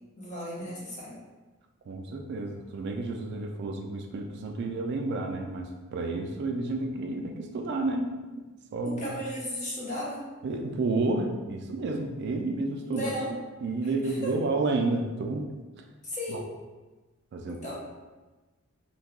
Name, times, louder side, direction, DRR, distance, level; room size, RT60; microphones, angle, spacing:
voice 1, 0.2-1.2 8.8-10.3 12.9-13.3 14.0-14.3 16.0-16.5 17.5-17.7, equal, 35° left, -6 dB, 0.9 m, -35 dB
voice 2, 1.9-8.1 8.4-8.5 8.7-9.1 10.4-13.1 13.6-15.5 15.8-15.9 16.3-16.4 17.3-17.7, right 3 dB, 55° right, 3 dB, 0.3 m, -30 dB
2.7 x 2.3 x 3.6 m, 1.2 s
head